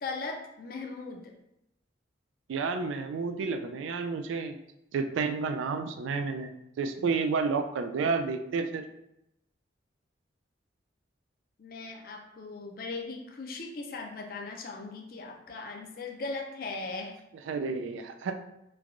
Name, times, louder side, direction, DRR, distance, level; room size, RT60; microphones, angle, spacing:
voice 1, 0.0-1.3 11.6-17.2, left 3 dB, 50° left, 2 dB, 0.4 m, -38 dB
voice 2, 2.5-4.6 4.9-6.5 6.8-8.8 17.5-18.4, right 4 dB, 85° right, 7 dB, 0.3 m, -30 dB
3.2 x 2.2 x 2.5 m, 0.84 s
head